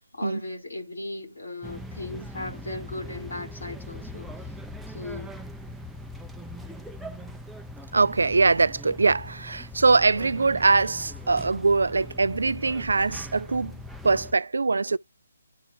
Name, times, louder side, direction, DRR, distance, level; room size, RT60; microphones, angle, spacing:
voice 1, 0.1-4.5 4.9-5.4, left 2 dB, 70° left, 4.3 m, -37 dB
sound 1, 1.6-14.3, left 1 dB, 5° right, 0.7 m, -41 dB
voice 2, 7.9-13.7 14.0-15.0, right 3 dB, 70° right, 0.3 m, -22 dB
12.5 x 4.2 x 2.3 m
figure-of-eight pair, 140°, 0 cm